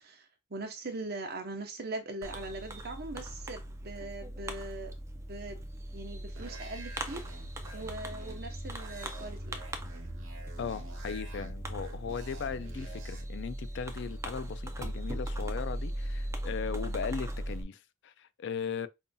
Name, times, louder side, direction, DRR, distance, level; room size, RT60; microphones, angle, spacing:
voice 1, 0.0-5.6 5.9-7.2 7.7-9.6, right 2 dB, 50° right, 0.9 m, -41 dB
Fireworks, 2.2-17.6, right 1 dB, 15° right, 0.5 m, -39 dB
sound 1, 6.4-13.2, right 1 dB, 80° right, 1.1 m, -47 dB
voice 2, 10.6-18.9, left 6 dB, 60° left, 0.4 m, -38 dB
5.3 x 2.7 x 2.3 m
head